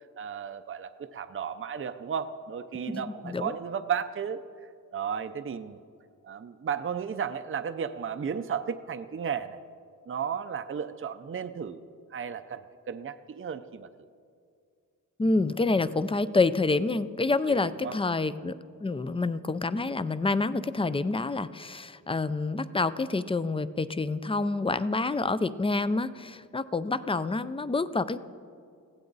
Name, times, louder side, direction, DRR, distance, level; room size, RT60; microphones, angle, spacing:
voice 1, 0.2-4.4 4.9-5.8 6.2-9.6 10.1-11.8 12.1-13.9 17.5-17.9, right 7 dB, 40° right, 9 dB, 0.5 m, -34 dB
voice 2, 2.9-3.5 15.2-28.2, left 3 dB, 15° left, 14 dB, 0.4 m, -28 dB
21.5 x 16.0 x 4.0 m, 2.3 s
wide cardioid pair, 165°, 33 cm